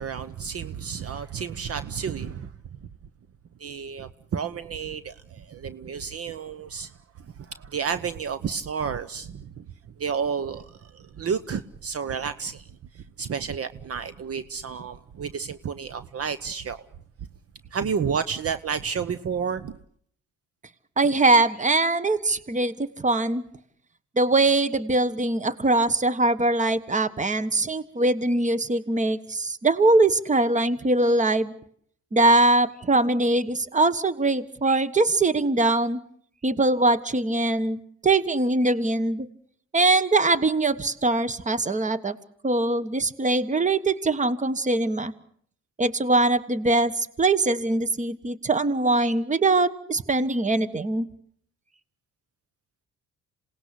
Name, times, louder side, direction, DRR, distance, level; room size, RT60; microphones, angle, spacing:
voice 1, 0.0-2.5 3.6-6.9 7.4-9.6 10.0-12.6 12.9-16.8 17.7-19.8, right 6 dB, 50° right, 1.0 m, -31 dB
voice 2, 21.0-23.4 24.2-31.5 32.1-36.0 36.4-39.3 39.7-42.2 42.4-45.1 45.8-51.1, right 2 dB, 25° right, 1.4 m, -22 dB
27.5 x 18.5 x 8.4 m
cardioid pair, 90°, 30 cm